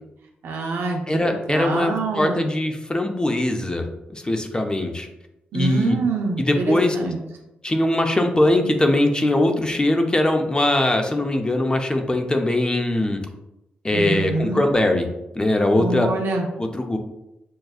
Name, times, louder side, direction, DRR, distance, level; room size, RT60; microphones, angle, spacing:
voice 1, 0.4-2.5 5.5-7.2 13.9-14.6 15.8-16.5, right 3 dB, 80° right, 2 dB, 0.7 m, -25 dB
voice 2, 1.1-3.8 4.1-5.1 5.5-6.0 6.4-7.0 7.6-13.2 13.8-15.0 15.3-16.1 16.6-17.0, left 1 dB, 20° left, 4 dB, 0.6 m, -21 dB
6.2 x 2.2 x 2.4 m, 0.91 s
cardioid pair, 60°, 4 cm